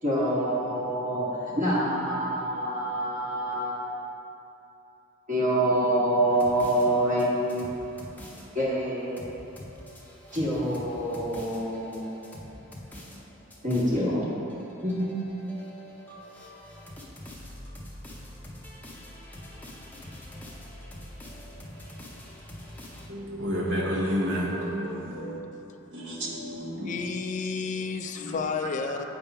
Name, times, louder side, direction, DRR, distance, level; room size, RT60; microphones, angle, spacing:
voice 1, 0.0-4.0 5.3-8.0 8.5-9.2 10.3-12.6 13.6-14.3 14.8-15.1, right 1 dB, 40° right, -9 dB, 1.3 m, -26 dB
sound 1, 6.3-23.1, left 1 dB, 10° left, 0.7 m, -45 dB
voice 2, 23.1-25.4 25.9-27.0 28.2-28.7, equal, 65° right, -2 dB, 1.1 m, -31 dB
voice 3, 26.8-29.0, left 4 dB, 40° left, 6 dB, 0.3 m, -31 dB
7.9 x 3.5 x 5.3 m, 2.8 s
head